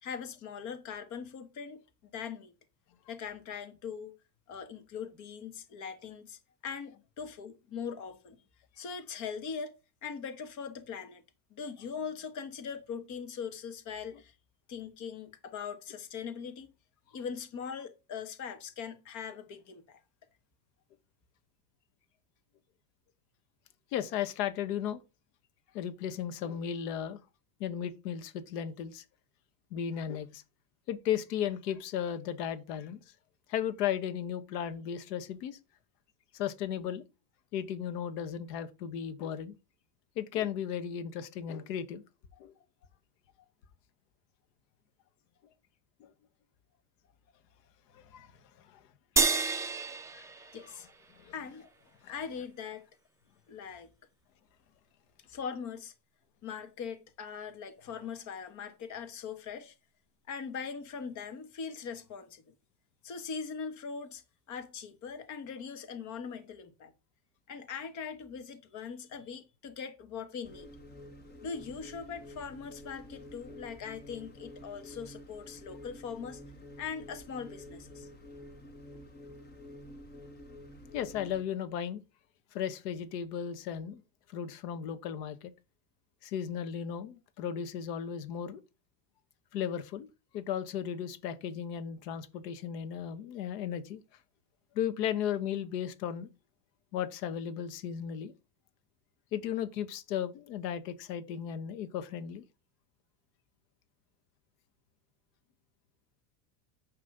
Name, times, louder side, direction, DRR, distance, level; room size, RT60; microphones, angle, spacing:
voice 1, 0.0-1.8 2.1-2.5 3.1-4.1 4.5-8.4 8.8-9.8 10.0-11.2 11.5-14.3 14.7-16.7 17.1-20.0 50.5-50.9 51.3-52.8 53.5-53.9 55.3-55.9 56.4-59.7 60.3-62.4 63.0-64.2 64.5-66.9 67.5-70.7 71.4-76.4 76.8-78.1, left 6 dB, 35° left, 1.4 m, -41 dB
voice 2, 23.9-25.0 25.7-27.2 27.6-29.0 29.7-30.4 30.9-33.0 33.5-35.6 36.3-37.0 37.5-39.5 40.2-42.0 42.4-42.5 46.0-46.1 47.9-48.3 48.6-48.8 50.1-50.3 51.2-51.3 52.0-52.1 80.9-82.0 82.5-84.0 84.3-85.5 86.2-88.6 89.5-90.1 90.3-94.0 94.7-96.3 96.9-98.3 99.3-102.4, left 9 dB, 80° left, 1.3 m, -35 dB
sound 1, 49.2-51.7, right 4 dB, 5° right, 0.6 m, -31 dB
sound 2, 70.4-81.4, left 1 dB, 20° left, 1.2 m, -49 dB
9.7 x 3.3 x 6.6 m
supercardioid pair, 150°, 48 cm